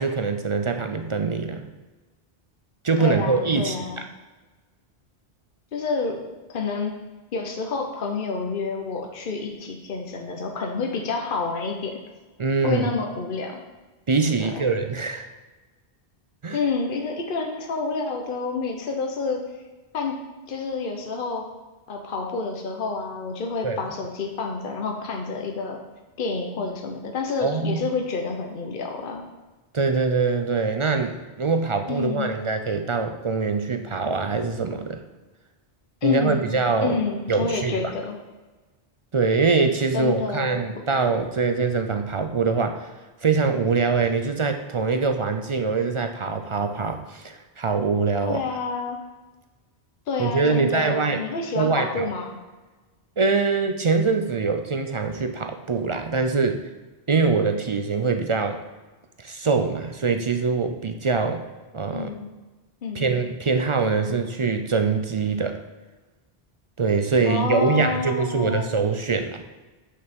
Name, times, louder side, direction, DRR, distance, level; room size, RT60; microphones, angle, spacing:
voice 1, 0.0-1.7 2.8-3.8 12.4-12.8 14.1-15.3 16.4-16.6 23.6-23.8 27.4-27.8 29.7-35.0 36.0-37.0 37.3-37.9 39.1-42.9 43.2-48.4 50.2-51.2 51.6-52.1 53.2-56.6 57.1-58.6 59.2-61.4 61.7-62.1 62.9-65.6 66.8-69.4, right 4 dB, 40° right, 6 dB, 0.4 m, -23 dB
voice 2, 3.0-4.1 5.7-6.2 6.5-6.9 7.3-12.0 12.6-13.6 14.4-14.7 16.5-19.4 19.9-20.2 20.5-21.5 21.9-25.8 26.2-29.3 31.9-32.4 36.0-36.5 36.8-38.2 39.9-40.6 48.2-49.0 50.1-52.4 61.9-62.3 62.8-63.1 67.3-68.7, left 4 dB, 55° left, 2 dB, 1.0 m, -28 dB
6.6 x 5.6 x 5.3 m, 1.2 s
omnidirectional pair, 1.1 m